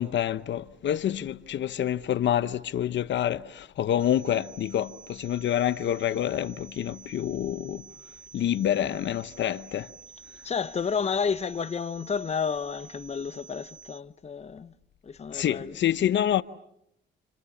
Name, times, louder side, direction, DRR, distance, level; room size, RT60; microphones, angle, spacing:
voice 1, 0.0-7.8 8.3-9.9 15.3-16.4, left 11 dB, 65° left, 1.0 m, -27 dB
sound 1, 4.0-14.0, right 5 dB, 5° right, 4.4 m, -50 dB
voice 2, 10.4-14.7 15.0-15.7, left 6 dB, 35° left, 1.0 m, -31 dB
30.0 x 27.0 x 7.2 m
cardioid pair, 90°, 20 cm